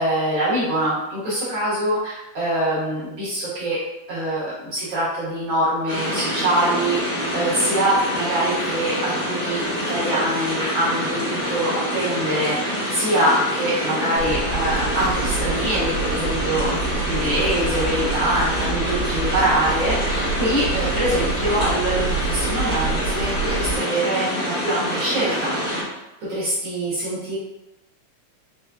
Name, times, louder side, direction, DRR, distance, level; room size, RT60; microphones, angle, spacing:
voice 1, 0.0-3.8 4.1-25.5 26.3-27.4, right 1 dB, 60° right, -9 dB, 1.4 m, -24 dB
sound 1, 5.9-25.8, equal, 35° left, 0.7 m, -26 dB
sound 2, 14.1-23.8, right 4 dB, 80° right, 1.3 m, -28 dB
5.0 x 2.3 x 2.3 m, 0.93 s
omnidirectional pair, 3.4 m